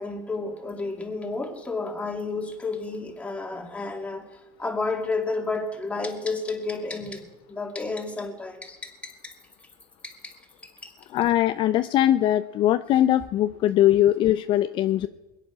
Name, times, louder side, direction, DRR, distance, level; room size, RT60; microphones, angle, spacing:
voice 1, 0.0-9.3 10.0-10.3 10.6-10.9, left 3 dB, 10° left, 2 dB, 2.5 m, -31 dB
voice 2, 11.1-15.1, left 12 dB, 45° left, 11 dB, 0.5 m, -21 dB
22.0 x 9.9 x 6.0 m, 1.2 s
supercardioid pair, 115°, 11 cm